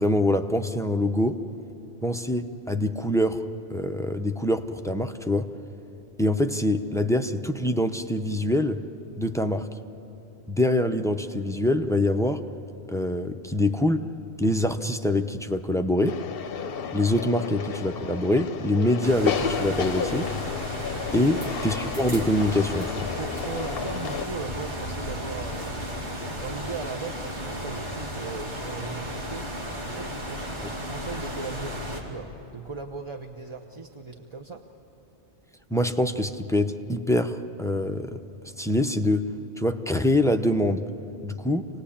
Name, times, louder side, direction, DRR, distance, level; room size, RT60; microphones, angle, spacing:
voice 1, 0.0-1.4 2.0-3.4 3.7-5.5 6.2-8.8 9.2-9.7 10.5-12.4 12.9-14.0 14.4-16.2 16.9-20.3 21.1-23.1 30.6-30.7 35.7-38.2 38.6-39.3 39.6-40.9 41.2-41.7, left 1 dB, 5° left, 7 dB, 0.5 m, -24 dB
sound 1, 16.1-24.3, left 7 dB, 60° left, 0.9 m, -32 dB
outdoor pool at night, 19.0-32.0, equal, 85° right, 3.1 m, -34 dB
voice 2, 23.2-25.8 26.3-29.5 29.8-34.6, right 4 dB, 30° right, 4 dB, 0.8 m, -38 dB
27.0 x 19.0 x 8.6 m, 3.0 s
omnidirectional pair, 1.2 m